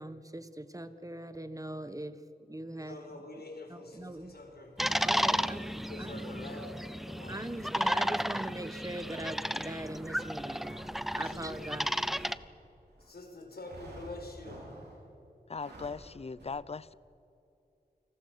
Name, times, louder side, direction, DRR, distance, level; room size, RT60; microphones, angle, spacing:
voice 1, 0.0-2.2 2.5-3.0 3.7-4.3 5.0-5.6 6.0-6.5 7.3-10.8 11.1-11.9, right 1 dB, 20° right, 1.4 m, -41 dB
voice 2, 2.8-7.8 11.2-11.7 13.0-14.8, left 2 dB, 70° left, 4.5 m, -47 dB
sound 1, 3.9-13.1 13.6-15.1 15.5-16.1 16.4-16.5, right 1 dB, 85° right, 6.6 m, -54 dB
sound 2, 4.8-12.3, equal, ahead, 0.7 m, -33 dB
voice 3, 15.5-16.9, left 4 dB, 40° left, 0.6 m, -39 dB
29.0 x 20.0 x 6.1 m
wide cardioid pair, 60°, 17 cm